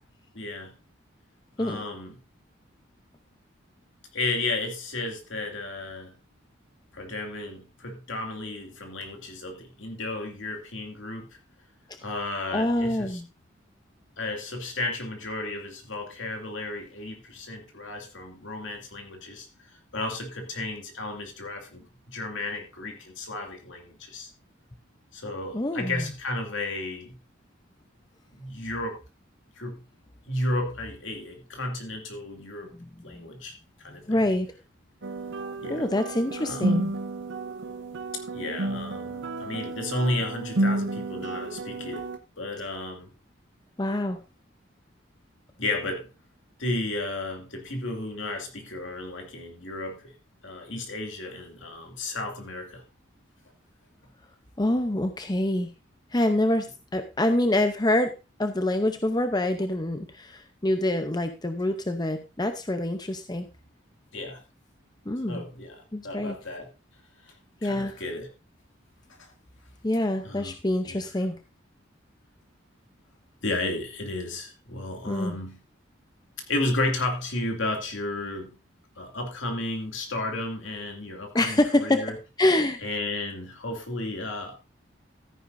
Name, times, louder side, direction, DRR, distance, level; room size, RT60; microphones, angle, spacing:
voice 1, 0.3-0.7 1.6-2.1 4.1-6.1 6.9-11.3 12.0-13.2 14.2-19.5 19.9-24.3 25.1-27.2 28.3-29.0 29.6-29.8 30.3-32.7 33.0-34.2 35.6-35.9 36.4-36.8 38.1-42.1 42.4-43.1 45.6-46.1 46.6-50.1 50.4-52.8 64.1-64.4 65.3-66.7 67.6-68.3 69.2-69.3 70.2-70.5 70.9-71.0 73.4-75.6 76.5-78.5 79.0-82.2 82.8-84.6, left 2 dB, 70° left, 3 dB, 2.5 m, -33 dB
voice 2, 12.5-13.2 25.5-26.1 32.8-33.2 34.1-34.5 35.7-36.9 43.8-44.2 54.6-55.7 56.1-56.7 56.9-58.1 58.4-63.5 65.1-65.4 65.9-66.4 67.6-68.0 69.8-71.4 75.1-75.4 81.3-82.0 82.4-82.8, left 1 dB, 20° left, 8 dB, 0.7 m, -26 dB
sound 1, 35.0-42.2, right 2 dB, 70° right, 0.7 m, -31 dB
13.5 x 10.0 x 2.6 m, 0.28 s
head